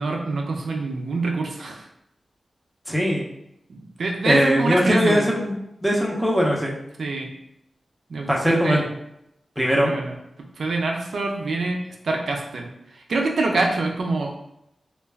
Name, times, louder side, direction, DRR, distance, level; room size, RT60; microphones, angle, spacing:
voice 1, 0.0-1.9 3.7-5.3 7.0-7.3 8.1-8.8 9.8-10.1 10.6-14.4, right 3 dB, 80° right, 1 dB, 0.3 m, -25 dB
voice 2, 2.9-3.2 4.2-5.6 5.8-6.8 8.3-8.9 9.6-9.9, equal, ahead, -3 dB, 0.7 m, -20 dB
2.2 x 2.1 x 3.3 m, 0.81 s
cardioid pair, 60°, 0 cm